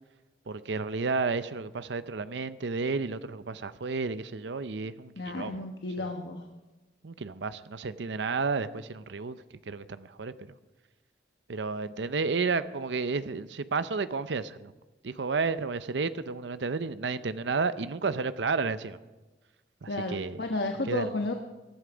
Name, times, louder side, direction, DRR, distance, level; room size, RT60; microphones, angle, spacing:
voice 1, 0.5-5.6 6.0-6.1 7.0-10.3 11.5-14.7 15.0-19.0 19.8-20.4 20.9-21.1, right 4 dB, 85° right, 13 dB, 0.6 m, -32 dB
voice 2, 5.2-6.4 19.9-21.3, left 2 dB, 75° left, 4 dB, 1.1 m, -32 dB
18.5 x 11.5 x 5.0 m, 1.2 s
head